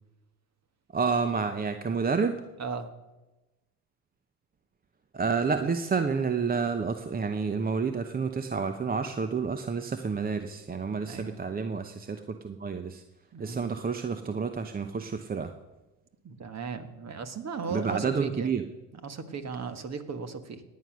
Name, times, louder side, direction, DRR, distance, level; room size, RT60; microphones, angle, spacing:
voice 1, 0.9-2.4 5.1-13.0 13.4-15.5 17.7-18.7, right 5 dB, 20° right, 9 dB, 0.8 m, -29 dB
voice 2, 11.0-11.4 13.3-13.7 16.2-18.5 19.0-20.6, right 5 dB, 35° right, 10 dB, 1.7 m, -36 dB
17.0 x 9.5 x 6.2 m, 1.1 s
hypercardioid pair, 85°, 47 cm